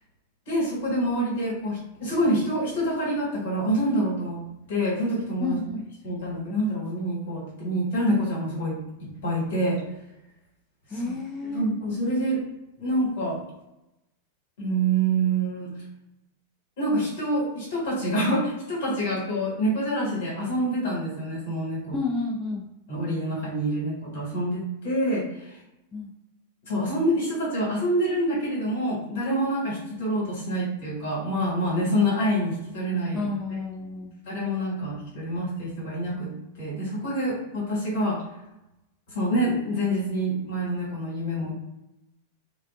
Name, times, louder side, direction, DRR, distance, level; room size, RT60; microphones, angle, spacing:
voice 1, 0.5-5.6 6.0-9.8 10.9-11.0 11.5-12.4 12.8-13.4 14.6-15.7 16.8-22.0 22.9-25.6 26.7-33.3 34.3-36.3 36.5-38.2 39.1-41.5, right 1 dB, 60° left, -6 dB, 1.4 m, -26 dB
voice 2, 5.4-5.9 10.9-11.7 21.9-22.7 25.9-26.1 33.1-34.2, left 3 dB, 15° left, -3 dB, 0.3 m, -30 dB
2.3 x 2.3 x 2.3 m, 0.91 s
figure-of-eight pair, 95°, 0 cm